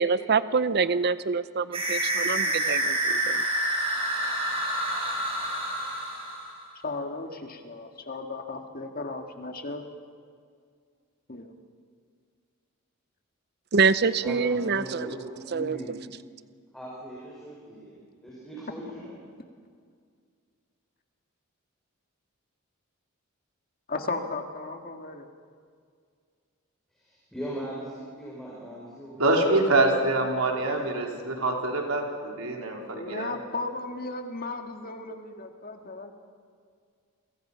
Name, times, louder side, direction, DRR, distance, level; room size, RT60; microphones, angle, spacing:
voice 1, 0.0-3.4 13.7-15.1 15.5-15.8, right 5 dB, 50° right, 14 dB, 0.6 m, -25 dB
sound 1, 1.7-6.6, right 1 dB, 25° right, 6.3 m, -28 dB
voice 2, 6.8-9.8 11.3-11.5 23.9-25.3 32.4-32.5 32.9-36.1, left 3 dB, 45° left, 4 dB, 2.0 m, -35 dB
voice 3, 14.0-15.9 16.7-19.1 27.0-29.5 30.5-30.9, right 1 dB, ahead, -6 dB, 5.6 m, -39 dB
voice 4, 29.2-33.3, right 2 dB, 85° right, 1 dB, 4.3 m, -25 dB
29.0 x 24.0 x 5.8 m, 2.1 s
head